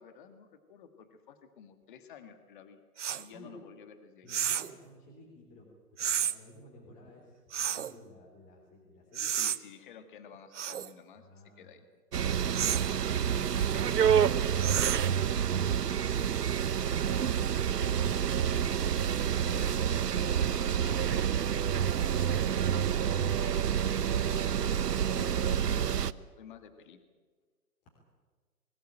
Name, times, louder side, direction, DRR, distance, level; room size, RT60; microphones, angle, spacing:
voice 1, 0.0-2.8 3.2-4.3 9.3-11.9 13.1-14.8 19.3-23.6 23.9-27.0, left 7 dB, 30° left, 9 dB, 1.8 m, -52 dB
sound 1, 3.0-3.2 4.3-4.8 6.0-6.4 7.5-7.9 9.1-9.6 10.5-10.9 12.5-12.9 14.6-15.2, right 9 dB, 50° right, 0.8 m, -31 dB
voice 2, 4.2-9.4 11.2-11.8, left 1 dB, 15° left, -4 dB, 3.5 m, -55 dB
sound 2, 12.1-26.1, right 8 dB, 90° right, 0.9 m, -28 dB
21.5 x 16.5 x 9.0 m, 1.5 s
hypercardioid pair, 155°, 46 cm